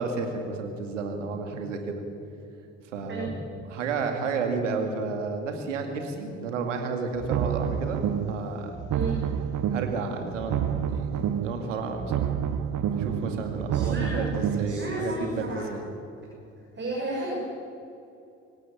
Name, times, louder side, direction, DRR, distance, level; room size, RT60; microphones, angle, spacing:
voice 1, 0.0-2.0 2.9-3.3 3.7-8.8 9.7-12.4 12.9-15.9, right 4 dB, 85° right, 5 dB, 2.3 m, -32 dB
sound 1, 7.1-8.4 8.7-10.0 10.3-11.6 11.9-14.8, right 9 dB, 55° right, 1.3 m, -28 dB
voice 2, 13.7-15.8 16.8-17.4, right 1 dB, 30° right, -3 dB, 6.6 m, -33 dB
25.0 x 15.0 x 8.7 m, 2.7 s
hypercardioid pair, 50°, 37 cm